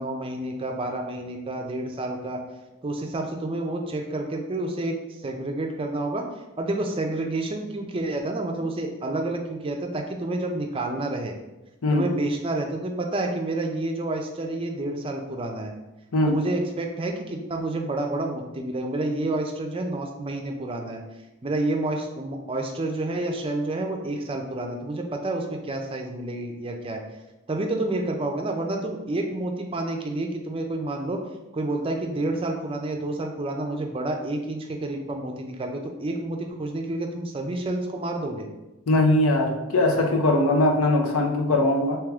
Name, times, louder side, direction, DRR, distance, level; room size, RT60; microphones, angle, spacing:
voice 1, 0.0-2.4 2.8-4.9 5.2-6.2 6.6-11.3 11.9-15.7 16.3-21.0 21.4-27.0 27.5-31.2 31.5-38.5, right 2 dB, 25° right, 2 dB, 0.4 m, -29 dB
voice 2, 38.9-42.0, left 1 dB, 90° left, 2 dB, 0.7 m, -21 dB
3.4 x 3.0 x 3.5 m, 1.0 s
head